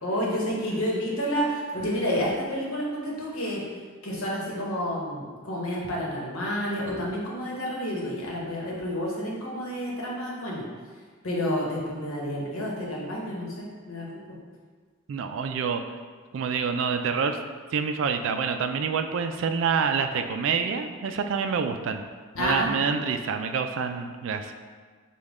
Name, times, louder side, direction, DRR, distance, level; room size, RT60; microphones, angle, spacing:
voice 1, 0.0-3.6 4.0-10.6 11.2-14.1 22.3-22.7, equal, 80° left, -3 dB, 1.0 m, -29 dB
voice 2, 15.1-15.8 16.3-17.4 17.7-22.0 22.4-24.5, right 6 dB, 60° right, 7 dB, 0.3 m, -27 dB
5.3 x 2.3 x 3.6 m, 1.5 s
head